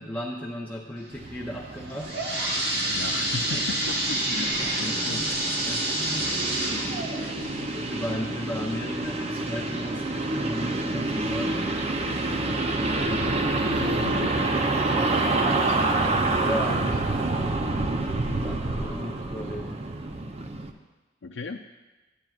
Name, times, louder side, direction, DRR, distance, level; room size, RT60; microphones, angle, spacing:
voice 1, 0.0-2.1 3.3-3.6 4.6-6.3 7.7-11.6 16.4-16.8 18.3-19.8 20.7-20.8, equal, 10° left, -4 dB, 0.7 m, -35 dB
sound 1, 1.1-20.7, right 2 dB, 35° right, 0.6 m, -28 dB
sound 2, 1.7-9.3 9.8-9.9 10.6-10.7 11.2-11.3, right 1 dB, 60° right, 1.4 m, -29 dB
voice 2, 2.9-5.5 6.7-7.7 12.5-16.9 17.7-18.1 18.8-19.0 21.2-21.6, left 4 dB, 75° left, 1 dB, 0.5 m, -39 dB
14.5 x 8.9 x 2.4 m, 1.2 s
head